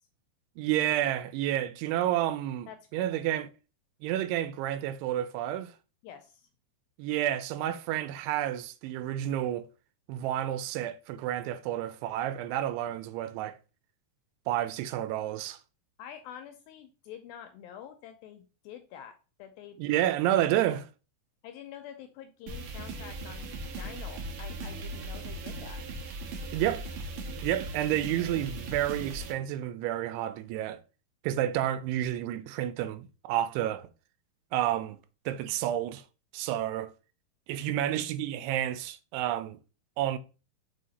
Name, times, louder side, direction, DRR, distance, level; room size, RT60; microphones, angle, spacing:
voice 1, 0.6-3.5 4.0-5.7 7.0-9.7 10.1-13.6 14.5-15.6 19.8-20.8 26.5-26.8 27.4-30.8 31.2-33.9 34.5-35.0 35.3-36.0 36.3-36.9 37.5-39.6 40.0-40.2, right 12 dB, 90° right, 2.7 m, -30 dB
voice 2, 2.7-3.2 6.0-6.5 16.0-19.8 20.5-20.6 21.4-23.5 23.8-25.8, left 9 dB, 80° left, 2.2 m, -47 dB
sound 1, 22.5-29.3, right 2 dB, 70° right, 2.2 m, -38 dB
6.5 x 3.5 x 4.0 m
omnidirectional pair, 4.6 m